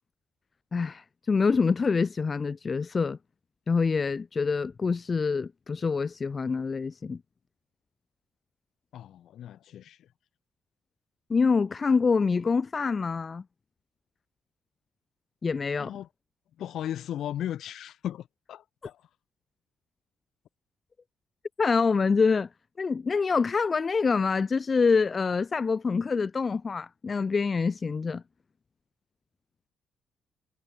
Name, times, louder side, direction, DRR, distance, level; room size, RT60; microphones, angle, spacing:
voice 1, 0.7-3.2 3.7-7.2 11.3-13.4 15.4-15.9 21.6-22.5 22.8-28.2, left 5 dB, 35° left, 0.5 m, -26 dB
voice 2, 8.9-10.0 15.8-16.1 16.6-19.0, left 11 dB, 75° left, 1.5 m, -36 dB
cardioid pair, 90°, 0 cm